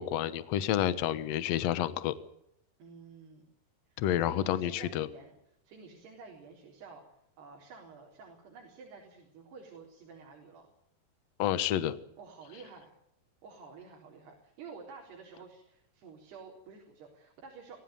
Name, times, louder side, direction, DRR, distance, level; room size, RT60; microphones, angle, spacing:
voice 1, 0.0-2.1 4.0-5.1 11.4-12.0, left 11 dB, 65° left, 14 dB, 1.6 m, -29 dB
voice 2, 2.8-3.5 3.9-5.3 5.6-7.0 7.4-10.7 12.2-12.9 13.4-17.8, right 5 dB, 85° right, -1 dB, 6.0 m, -51 dB
23.5 x 16.0 x 9.4 m, 0.76 s
omnidirectional pair, 4.6 m